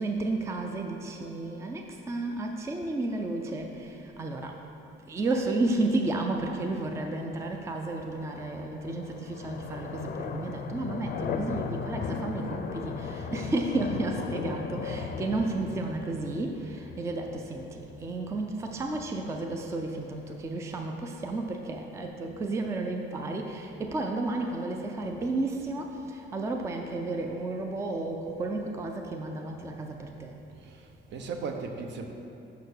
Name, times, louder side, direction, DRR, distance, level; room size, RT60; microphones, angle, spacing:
voice 1, 0.0-4.6 5.1-30.4, right 2 dB, 15° right, 3 dB, 0.4 m, -32 dB
sound 1, 6.7-20.6, left 5 dB, 50° left, 0.5 m, -38 dB
voice 2, 30.6-32.1, right 4 dB, 60° right, 4 dB, 0.8 m, -37 dB
6.7 x 5.8 x 6.5 m, 2.8 s
cardioid pair, 175°, 20 cm